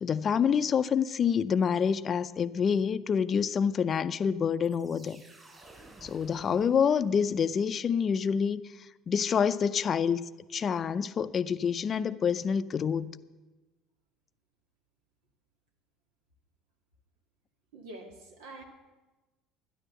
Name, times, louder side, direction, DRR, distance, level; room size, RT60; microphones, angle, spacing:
voice 1, 0.0-5.2 6.0-8.6 9.1-10.2 10.5-13.1, left 7 dB, 40° left, 14 dB, 0.5 m, -27 dB
sound 1, 4.6-7.4, right 2 dB, 20° right, 4.1 m, -54 dB
voice 2, 17.7-18.6, right 2 dB, 75° right, 3 dB, 2.1 m, -46 dB
12.5 x 10.0 x 6.9 m, 1.1 s
hypercardioid pair, 70°, 0 cm